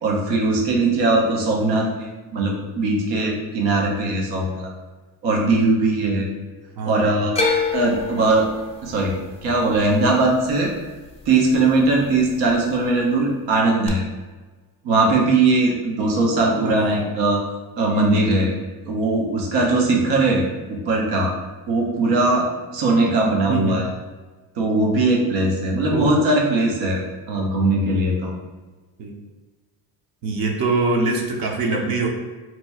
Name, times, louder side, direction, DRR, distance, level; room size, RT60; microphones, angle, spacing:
voice 1, 0.0-1.9 2.3-4.7 5.2-6.3 6.8-7.4 7.7-8.5 8.8-9.1 9.4-10.7 11.3-14.0 14.8-17.4 17.8-18.5 18.8-21.3 21.7-23.8 24.6-27.0 27.3-28.3, right 2 dB, 85° right, -1 dB, 0.9 m, -20 dB
voice 2, 6.8-7.3 16.4-17.1 23.5-23.9 25.9-26.1 29.0-29.1 30.2-32.1, right 3 dB, 55° right, 1 dB, 0.7 m, -24 dB
sound 1, 7.3-11.5 11.8-12.5 13.9-14.0, left 4 dB, 15° left, 0.4 m, -27 dB
2.9 x 2.3 x 4.1 m, 1.3 s
cardioid pair, 90°, 42 cm